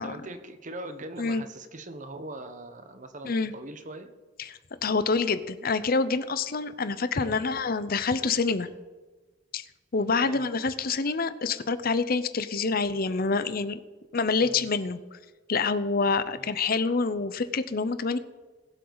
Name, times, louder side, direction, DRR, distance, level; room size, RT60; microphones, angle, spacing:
voice 1, 0.0-4.1 7.2-7.4 10.2-10.4 14.4-14.7 16.3-16.6, right 1 dB, 40° right, 8 dB, 1.0 m, -41 dB
voice 2, 4.4-8.7 9.5-9.6 9.9-13.8 14.1-15.2 15.5-18.2, left 4 dB, 50° left, 13 dB, 0.7 m, -27 dB
20.5 x 7.7 x 4.0 m, 1.3 s
head